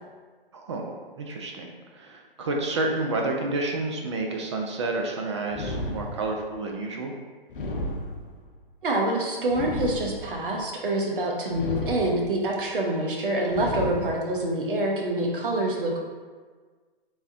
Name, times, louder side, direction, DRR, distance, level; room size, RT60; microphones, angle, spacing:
voice 1, 0.5-7.1, right 2 dB, 30° right, 1 dB, 0.4 m, -30 dB
sound 1, 5.5-6.6 7.5-8.6 9.5-10.6 11.5-12.5 13.5-14.5, left 1 dB, 60° left, 0.6 m, -33 dB
voice 2, 8.8-16.1, right 1 dB, 65° right, -1 dB, 0.9 m, -26 dB
3.4 x 3.3 x 2.6 m, 1.5 s
figure-of-eight pair, 130°, 29 cm